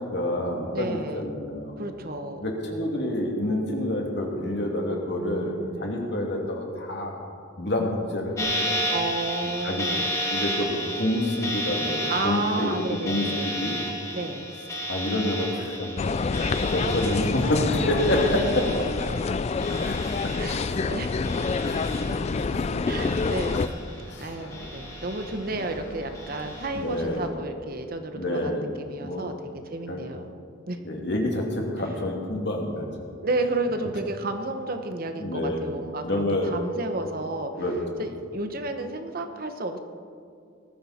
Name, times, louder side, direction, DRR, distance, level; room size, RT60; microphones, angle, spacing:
voice 1, 0.0-1.8 2.4-7.2 7.6-8.9 9.6-9.9 10.3-13.7 14.9-16.1 16.5-18.9 19.7-20.8 21.1-21.2 21.6-23.2 23.5-23.7 24.1-24.3 25.5-25.6 26.7-27.3 28.1-28.7 29.0-29.2 29.9-30.0 30.8-32.9 35.2-35.6 36.0-36.5 37.6-37.8, left 1 dB, 60° left, 0 dB, 2.7 m, -28 dB
voice 2, 0.7-1.3 1.8-2.5 5.2-5.9 8.9-10.1 12.1-13.5 14.1-14.5 16.4-16.7 20.4-21.3 22.9-23.6 24.2-28.5 28.8-29.3 29.6-30.3 30.7-30.8 33.2-37.5 38.0-39.8, right 2 dB, 50° right, 7 dB, 1.0 m, -32 dB
sound 1, 8.4-20.9 21.2-22.5 22.9-24.1 24.5-25.6 26.1-26.7, equal, 15° left, 2.1 m, -33 dB
sound 2, 16.0-23.7, left 4 dB, 35° left, 0.3 m, -27 dB
sound 3, 16.8-27.3, left 1 dB, 80° left, 3.2 m, -42 dB
19.5 x 14.0 x 4.3 m, 2.3 s
head